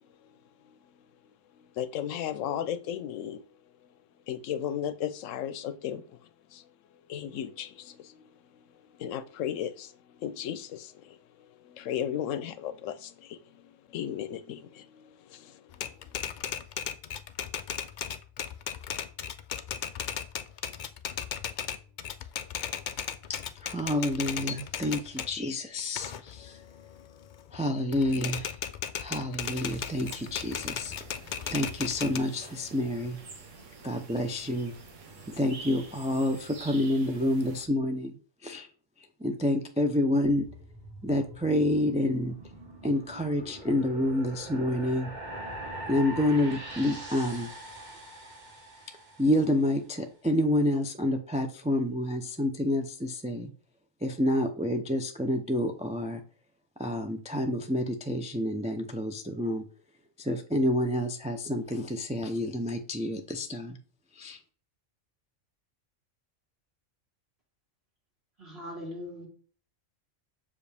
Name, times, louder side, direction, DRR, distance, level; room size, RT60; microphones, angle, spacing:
voice 1, 0.1-0.9 1.2-3.4 4.3-6.2 6.5-6.7 7.1-16.6, left 10 dB, 80° left, 14 dB, 1.0 m, -36 dB
Typewriter, 15.7-25.4 25.8-27.6 27.9-32.2, left 8 dB, 65° left, 0.4 m, -36 dB
voice 2, 23.3-26.6 27.5-28.5 29.0-30.9 31.5-33.2 33.8-34.7 35.3-38.7 39.2-40.5 41.0-42.4 42.8-45.1 45.9-47.5 49.2-53.5 54.0-56.2 56.8-59.6 60.2-63.8 64.1-64.4, left 1 dB, 10° right, 4 dB, 0.4 m, -28 dB
sound 1, 29.4-37.7, right 4 dB, 75° right, 1.4 m, -48 dB
sound 2, 40.2-49.6, right 1 dB, 35° right, 1.5 m, -43 dB
voice 3, 68.4-69.3, left 1 dB, 55° right, -5 dB, 2.0 m, -40 dB
7.0 x 4.9 x 3.4 m, 0.43 s
omnidirectional pair, 1.3 m